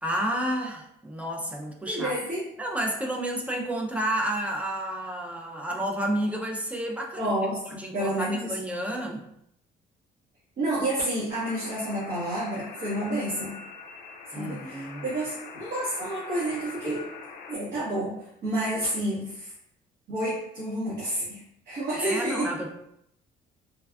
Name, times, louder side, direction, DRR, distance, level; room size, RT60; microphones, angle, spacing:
voice 1, 0.0-2.2 2.6-7.3 7.7-9.2 14.3-15.1 22.0-22.7, right 1 dB, 10° right, 0 dB, 0.4 m, -30 dB
voice 2, 1.9-2.4 7.2-8.5 10.6-13.6 14.3-17.1 17.5-18.1 18.4-19.5 20.1-22.5, right 1 dB, 60° right, -9 dB, 1.1 m, -29 dB
sound 1, 11.3-17.6, left 5 dB, 60° left, 0.4 m, -43 dB
3.3 x 2.3 x 2.2 m, 0.75 s
cardioid pair, 110°, 17 cm